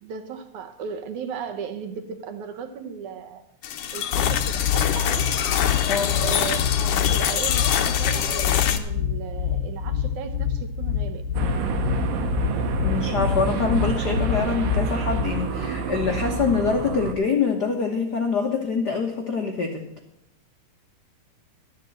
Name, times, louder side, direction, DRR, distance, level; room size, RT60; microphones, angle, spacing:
voice 1, 0.0-3.4 3.9-5.3 6.2-11.2, right 7 dB, 70° right, 8 dB, 2.3 m, -36 dB
sound 1, 3.6-8.8, left 9 dB, 70° left, 1.3 m, -24 dB
sound 2, 4.1-15.2, left 9 dB, 45° right, 0.8 m, -26 dB
sound 3, 11.3-17.1, right 4 dB, 90° right, 2.9 m, -28 dB
voice 2, 12.8-19.9, left 5 dB, 90° left, 3 dB, 0.9 m, -25 dB
12.0 x 8.3 x 7.6 m, 0.80 s
omnidirectional pair, 3.8 m